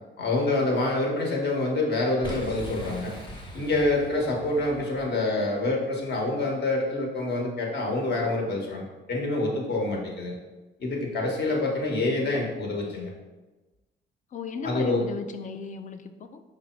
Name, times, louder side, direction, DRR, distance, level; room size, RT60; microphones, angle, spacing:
voice 1, 0.2-3.2 3.5-10.3 10.8-13.1 14.6-15.0, left 2 dB, 55° left, -1 dB, 1.1 m, -26 dB
Boom, 2.2-5.2, equal, 25° left, 0.9 m, -40 dB
voice 2, 14.3-16.4, left 5 dB, 40° left, 9 dB, 0.4 m, -36 dB
5.2 x 2.0 x 4.4 m, 1.2 s
cardioid pair, 90°, 20 cm